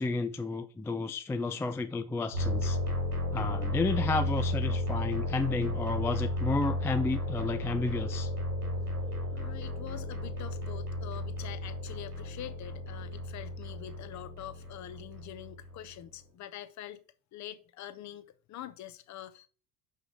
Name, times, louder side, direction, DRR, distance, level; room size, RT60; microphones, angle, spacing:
voice 1, 0.0-2.8 3.3-8.3, left 3 dB, 5° left, 0.4 m, -32 dB
sound 1, 2.3-16.0, left 1 dB, 90° right, 3.0 m, -33 dB
voice 2, 9.3-17.0 17.3-19.5, left 12 dB, 40° left, 1.0 m, -45 dB
6.2 x 5.6 x 4.9 m
figure-of-eight pair, 70°, 45 cm